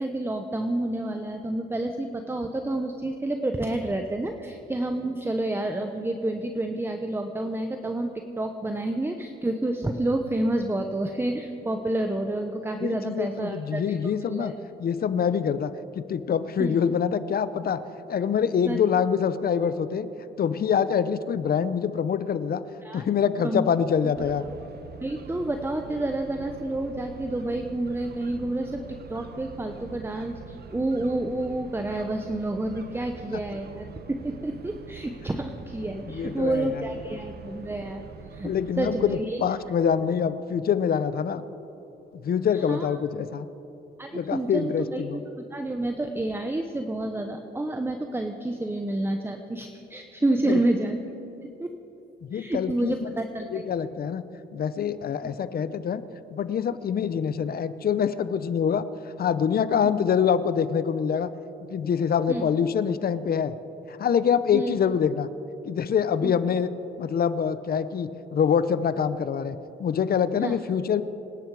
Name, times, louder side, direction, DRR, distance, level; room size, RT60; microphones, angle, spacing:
voice 1, 0.0-14.5 16.6-16.8 18.6-18.8 22.8-23.1 23.4-23.6 25.0-28.8 29.1-38.0 38.3-38.5 38.8-39.4 42.5-42.9 44.0-45.0 45.5-51.0 51.6-51.7 52.3-53.6 62.3-62.4 64.5-64.7 66.2-66.3 70.4-70.6, right 1 dB, 10° right, 6 dB, 0.9 m, -29 dB
voice 2, 12.8-14.5 14.8-17.8 18.1-20.1 20.4-22.6 22.9-24.4 36.0-36.7 38.4-41.4 42.2-43.5 44.1-45.2 50.4-50.6 52.3-53.1 53.5-54.2 54.5-56.0 56.3-58.9 59.2-61.3 61.7-63.5 63.9-65.3 65.6-66.7 67.0-71.0, left 7 dB, 50° left, 14 dB, 0.7 m, -25 dB
sound 1, 24.1-39.2, right 6 dB, 55° right, 1.0 m, -44 dB
25.5 x 10.5 x 4.8 m, 3.0 s
cardioid pair, 90°, 20 cm